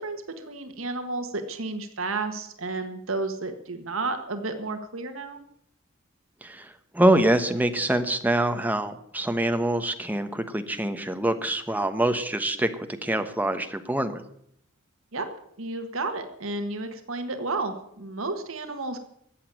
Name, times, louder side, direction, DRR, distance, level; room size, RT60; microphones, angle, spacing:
voice 1, 0.0-5.4 15.1-15.3 15.6-19.1, right 3 dB, 75° right, 7 dB, 1.6 m, -32 dB
voice 2, 6.9-12.7 13.0-14.2, right 1 dB, 10° right, 7 dB, 1.1 m, -25 dB
14.0 x 8.4 x 9.1 m, 0.71 s
head